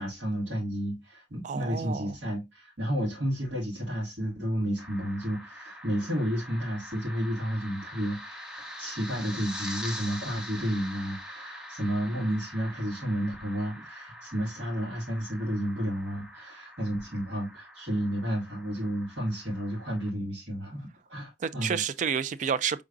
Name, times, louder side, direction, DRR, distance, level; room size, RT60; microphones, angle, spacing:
voice 1, 0.0-21.8, equal, 85° right, 2.1 m, -31 dB
voice 2, 1.4-2.1 21.4-22.8, right 7 dB, 45° right, 0.3 m, -30 dB
sound 1, 4.8-20.1, equal, 5° right, 0.7 m, -44 dB
4.7 x 3.7 x 2.5 m
head